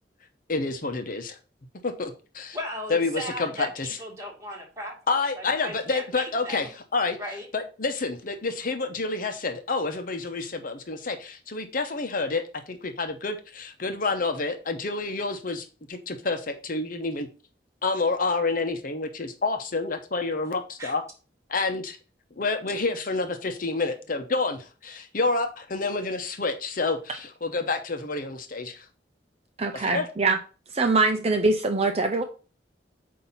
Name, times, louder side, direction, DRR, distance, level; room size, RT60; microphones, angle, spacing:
voice 1, 0.5-1.4 1.8-2.6 2.9-4.0 5.1-6.7 6.9-7.2 7.5-17.3 17.8-21.0 21.5-22.0 22.4-28.9 29.7-30.1, left 3 dB, 50° left, 6 dB, 0.9 m, -28 dB
voice 2, 2.5-4.9 5.4-6.7 7.2-7.5 20.8-20.9, equal, 15° right, -1 dB, 2.2 m, -36 dB
voice 3, 29.6-30.4 30.7-32.2, right 3 dB, 35° right, 6 dB, 0.6 m, -23 dB
8.4 x 2.8 x 5.5 m, 0.35 s
head